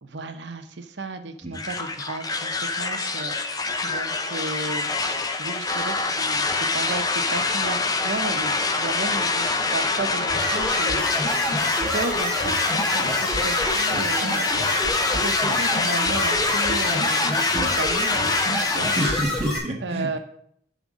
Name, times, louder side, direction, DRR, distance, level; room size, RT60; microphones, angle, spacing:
voice 1, 0.0-4.9 5.4-18.9 19.8-20.2, right 3 dB, 80° right, 8 dB, 0.8 m, -34 dB
sound 1, 1.5-19.2, left 3 dB, 20° left, 0.6 m, -25 dB
sound 2, 10.3-19.6, left 1 dB, 5° left, 2.1 m, -28 dB
voice 2, 18.8-20.2, equal, 35° right, 2 dB, 1.1 m, -29 dB
9.2 x 3.7 x 6.2 m, 0.69 s
head